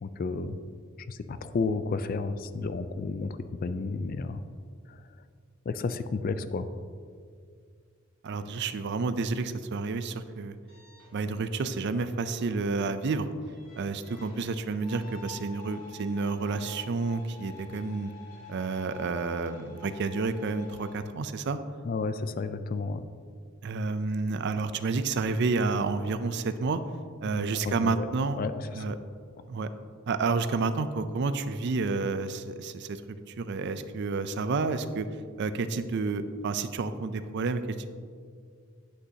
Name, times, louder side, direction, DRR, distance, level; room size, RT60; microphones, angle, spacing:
voice 1, 0.0-0.6 1.1-4.4 4.9-5.0 5.7-6.7 21.8-23.0 27.3-28.1 28.4-29.0, left 4 dB, 45° left, 11 dB, 0.3 m, -32 dB
voice 2, 8.2-10.5 11.1-13.3 13.8-18.1 18.5-21.6 23.6-26.8 27.2-28.4 28.7-29.0 29.5-29.7 30.1-33.0 33.4-35.1 35.4-37.9, right 4 dB, 55° right, 11 dB, 0.4 m, -30 dB
sound 1, 10.7-21.0, left 4 dB, 80° left, 1.7 m, -49 dB
8.6 x 8.0 x 2.8 m, 2.1 s
head